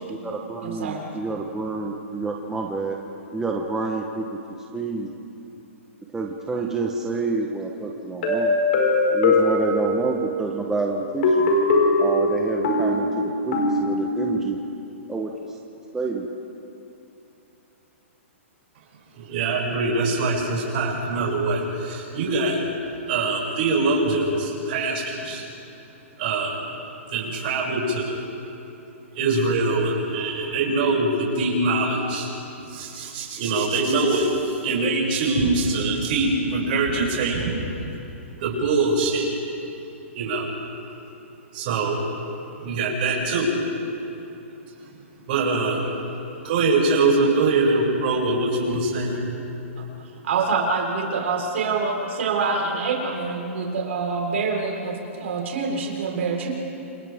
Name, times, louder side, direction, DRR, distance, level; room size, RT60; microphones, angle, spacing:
voice 1, 0.1-3.0 3.3-4.4 4.7-5.1 6.1-8.6 9.1-11.5 12.0-14.6 15.1-15.6 15.9-16.3, right 3 dB, 5° right, 0 dB, 1.1 m, -28 dB
voice 2, 0.6-1.0 50.2-56.5, right 4 dB, 65° right, 0 dB, 4.4 m, -26 dB
sound 1, 8.2-10.4 11.2-14.4, left 2 dB, 50° left, 5.1 m, -21 dB
voice 3, 19.2-25.4 26.2-26.6 27.1-28.2 29.1-32.3 32.7-37.6 38.4-39.4 40.1-40.5 41.5-42.1 42.6-43.6 45.3-45.9 46.4-49.3, right 3 dB, 45° right, -4 dB, 6.8 m, -23 dB
28.5 x 27.5 x 3.6 m, 2.9 s
hypercardioid pair, 155°, 7 cm